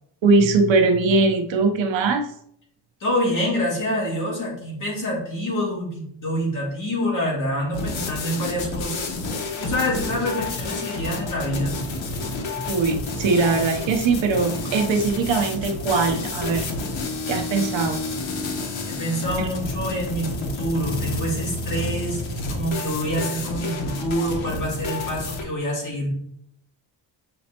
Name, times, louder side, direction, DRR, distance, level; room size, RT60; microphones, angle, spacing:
voice 1, 0.2-2.3 12.7-16.7 17.3-18.0 19.4-19.5, right 4 dB, 80° right, 5 dB, 0.9 m, -21 dB
voice 2, 3.0-9.2 9.6-11.7 18.9-22.2 22.5-26.1, equal, 45° left, -4 dB, 2.4 m, -26 dB
sound 1, 7.7-25.4, left 3 dB, 85° left, 1.2 m, -30 dB
sound 2, 10.5-23.6, right 3 dB, 15° right, 0.3 m, -41 dB
7.7 x 4.2 x 2.9 m, 0.69 s
wide cardioid pair, 170°, 45 cm